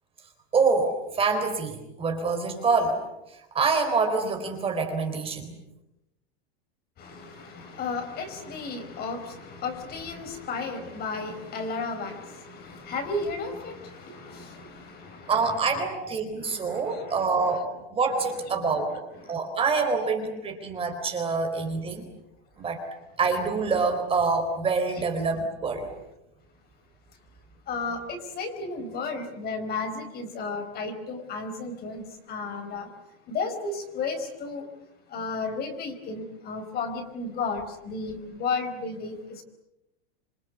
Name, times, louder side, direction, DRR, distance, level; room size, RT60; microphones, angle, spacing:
voice 1, 0.5-3.0 3.5-5.5 15.3-17.6 17.9-18.9 19.3-22.1 22.6-22.8 23.2-25.9, right 4 dB, 20° right, 4 dB, 4.0 m, -26 dB
voice 2, 7.0-15.8 16.3-17.2 19.2-19.3 27.7-32.9 33.3-34.6 35.1-39.4, left 4 dB, 30° left, 6 dB, 4.8 m, -34 dB
27.5 x 24.5 x 8.3 m, 0.91 s
supercardioid pair, 155°, 31 cm